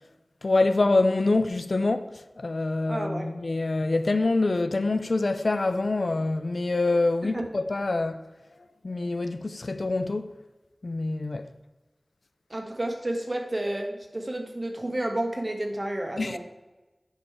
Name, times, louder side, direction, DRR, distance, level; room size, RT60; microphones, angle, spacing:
voice 1, 0.4-2.1 2.4-8.2 8.8-10.3 10.8-11.4 16.2-16.4, left 2 dB, 70° left, 0.5 m, -25 dB
voice 2, 2.9-3.3 7.3-7.5 12.5-16.4, right 1 dB, 40° right, 1.4 m, -30 dB
10.0 x 5.3 x 4.7 m
wide cardioid pair, 50°, 0 cm